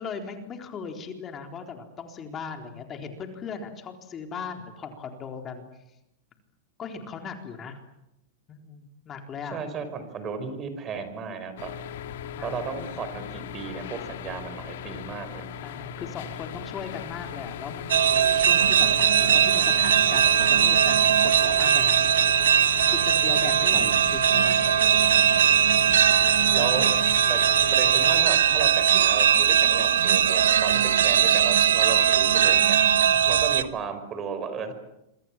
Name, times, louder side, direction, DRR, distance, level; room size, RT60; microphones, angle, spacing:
voice 1, 0.0-5.6 6.8-7.8 8.5-9.6 12.3-12.9 15.6-22.0 22.9-24.6 26.6-27.0 32.8-33.3, left 5 dB, 30° left, 5 dB, 4.0 m, -38 dB
voice 2, 9.5-11.7 12.4-15.5 23.7-24.1 26.5-26.9 27.3-32.8 33.3-34.7, right 6 dB, 30° right, 9 dB, 5.4 m, -34 dB
sound 1, 11.6-28.2, left 9 dB, 75° left, 2.1 m, -37 dB
sound 2, 17.9-33.6, right 9 dB, 90° right, 1.5 m, -20 dB
27.0 x 24.0 x 7.5 m, 0.85 s
hypercardioid pair, 120°, 0 cm